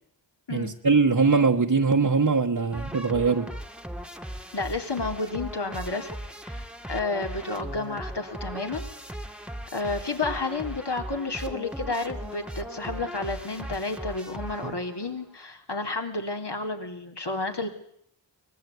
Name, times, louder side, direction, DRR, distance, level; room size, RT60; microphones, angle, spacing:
voice 1, 0.5-3.5 14.6-14.7, right 4 dB, 50° right, 1.4 m, -22 dB
sound 1, 2.7-15.1, equal, ahead, 1.7 m, -38 dB
voice 2, 4.5-6.2 6.4-8.9 9.7-17.7, left 3 dB, 65° left, 3.7 m, -31 dB
23.5 x 20.5 x 9.6 m
wide cardioid pair, 55°, 44 cm